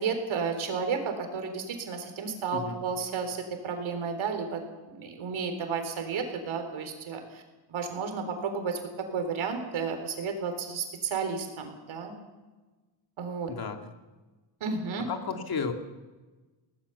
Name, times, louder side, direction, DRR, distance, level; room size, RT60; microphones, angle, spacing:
voice 1, 0.0-4.6 4.9-7.4 7.7-12.1 13.2-13.5 14.6-15.1, right 5 dB, 75° right, 6 dB, 4.0 m, -32 dB
voice 2, 15.1-15.7, left 5 dB, 50° left, 5 dB, 2.5 m, -32 dB
21.0 x 18.0 x 7.0 m, 1.2 s
cardioid pair, 100°, 48 cm